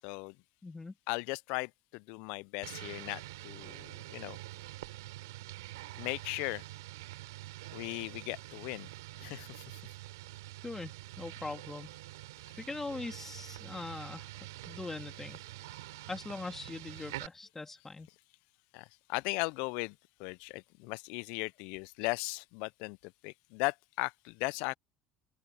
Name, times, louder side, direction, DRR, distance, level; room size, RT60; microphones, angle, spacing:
voice 1, 0.0-0.3 1.1-4.4 6.0-6.6 7.7-8.9 9.2-9.6 18.7-19.9 20.2-24.8, left 27 dB, 70° left, 0.4 m, -37 dB
voice 2, 0.6-0.9 10.6-12.0 12.6-14.3 14.6-15.4 16.1-18.1, left 3 dB, 15° left, 2.9 m, -41 dB
sound 1, 2.6-17.3, right 17 dB, 90° right, 3.1 m, -46 dB
open air
supercardioid pair, 90°, 2 cm